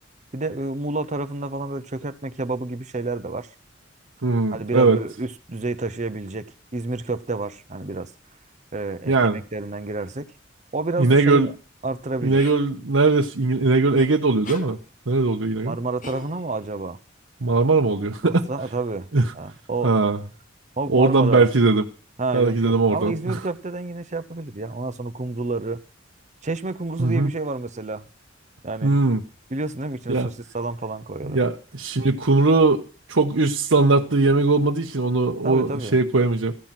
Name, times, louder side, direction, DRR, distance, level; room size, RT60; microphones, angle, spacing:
voice 1, 0.3-3.5 4.5-8.1 8.7-10.3 10.7-11.5 11.8-12.4 15.6-17.0 18.2-19.1 19.3-19.9 20.8-21.5 22.2-25.8 26.4-28.1 28.6-28.9 29.5-31.4 35.4-36.0, right 3 dB, 35° right, 0.9 m, -29 dB
voice 2, 4.2-5.0 9.1-9.4 11.0-11.5 12.2-14.8 15.1-15.8 17.4-18.4 19.1-19.3 19.8-20.2 20.9-21.8 22.3-23.4 27.0-27.3 28.8-29.2 30.1-30.3 31.2-32.8 33.1-36.6, right 3 dB, 80° right, 1.0 m, -19 dB
sound 1, 12.4-12.6 14.0-14.1 14.4-14.7 16.0-16.7, left 3 dB, 40° left, 1.2 m, -38 dB
15.5 x 9.1 x 5.9 m
head